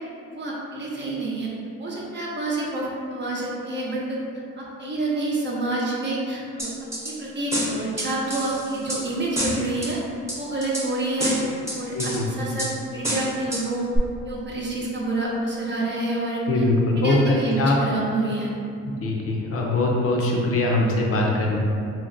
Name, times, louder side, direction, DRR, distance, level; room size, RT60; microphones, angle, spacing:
voice 1, 0.3-1.5 1.8-4.2 4.6-6.7 7.0-10.0 10.4-11.4 11.8-12.7 12.9-13.9 14.2-16.6 16.9-18.5, right 2 dB, 40° right, -5 dB, 0.6 m, -28 dB
sound 1, 6.6-7.1 7.5-9.0 9.4-9.9 10.3-10.9 11.2-12.2 12.6-12.7 13.0-13.6 14.0-14.1, right 1 dB, 10° right, 0.8 m, -28 dB
voice 2, 11.9-12.5 16.5-17.8 19.0-21.6, left 2 dB, 50° left, -1 dB, 0.6 m, -22 dB
2.5 x 2.0 x 3.8 m, 2.5 s
cardioid pair, 90°, 30 cm